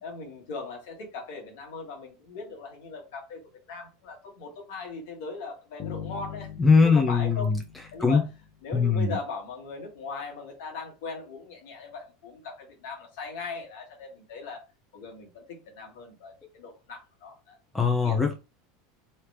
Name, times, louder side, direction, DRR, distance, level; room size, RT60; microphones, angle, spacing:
voice 1, 0.0-3.4 3.7-6.5 6.8-7.5 7.9-8.3 8.6-14.6 14.9-17.6 18.0-18.2, left 4 dB, 60° left, 1.5 m, -39 dB
sound 1, 5.8-8.8, left 8 dB, 40° left, 1.0 m, -41 dB
voice 2, 6.6-7.6 8.0-8.2 8.7-9.2 17.7-18.3, left 4 dB, 10° left, 0.7 m, -21 dB
3.3 x 2.9 x 3.5 m
figure-of-eight pair, 80°, 0 cm